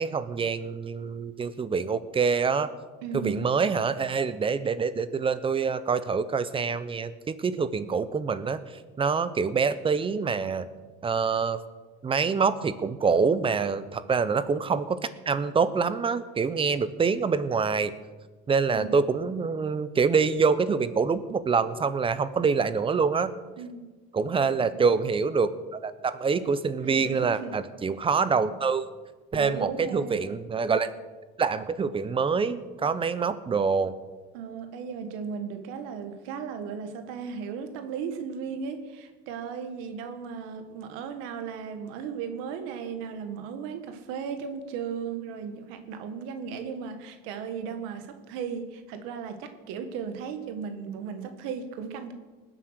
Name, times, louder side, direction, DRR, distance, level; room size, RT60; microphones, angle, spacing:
voice 1, 0.0-2.7 3.1-8.6 9.0-10.7 11.0-11.6 12.0-15.0 15.3-17.9 18.5-23.3 24.1-28.9 29.3-30.9 31.4-33.9, right 5 dB, 25° right, 14 dB, 0.9 m, -26 dB
voice 2, 3.0-3.5 18.7-19.0 23.6-23.9 24.4-25.0 26.8-27.5 29.3-30.2 34.3-52.1, right 6 dB, 85° right, 8 dB, 1.6 m, -36 dB
19.5 x 8.1 x 6.6 m, 1.3 s
cardioid pair, 115°, 21 cm